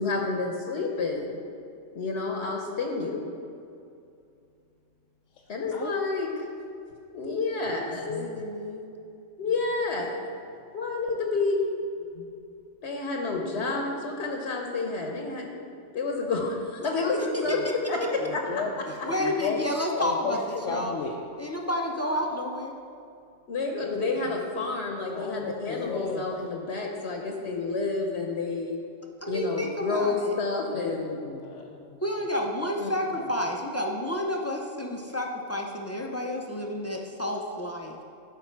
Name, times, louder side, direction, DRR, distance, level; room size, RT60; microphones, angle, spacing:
voice 1, 0.0-1.4 1.9-3.3 5.5-6.5 7.1-8.3 9.4-10.1 10.7-11.6 12.2-12.3 12.8-15.6 15.9-17.6 17.9-18.4 23.5-28.8 29.3-31.2 32.8-32.9, left 3 dB, 65° left, 1 dB, 1.1 m, -29 dB
voice 2, 7.5-7.9 8.2-8.9 16.8-17.4 19.0-20.9 21.4-22.8 29.2-30.3 32.0-38.0, left 1 dB, 20° left, 0 dB, 0.4 m, -31 dB
voice 3, 18.2-19.6 20.0-20.4 20.6-21.2 23.8-23.9 25.1-26.3 30.7-32.0, left 5 dB, 90° left, 0 dB, 1.0 m, -34 dB
12.0 x 5.0 x 4.5 m, 2.5 s
omnidirectional pair, 1.3 m